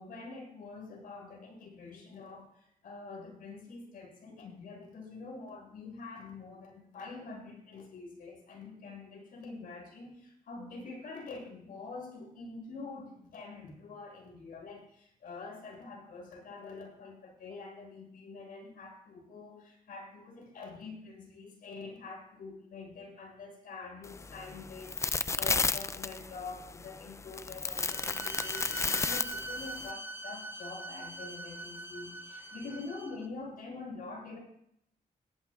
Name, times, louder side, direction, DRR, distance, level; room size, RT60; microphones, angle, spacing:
voice 1, 0.0-34.4, left 3 dB, 80° left, -1 dB, 6.9 m, -46 dB
sound 1, 24.0-29.9, left 4 dB, 20° left, 0.4 m, -33 dB
Bowed string instrument, 27.8-33.3, right 1 dB, 15° right, 1.1 m, -42 dB
20.5 x 14.5 x 2.4 m, 0.72 s
wide cardioid pair, 130°, 15 cm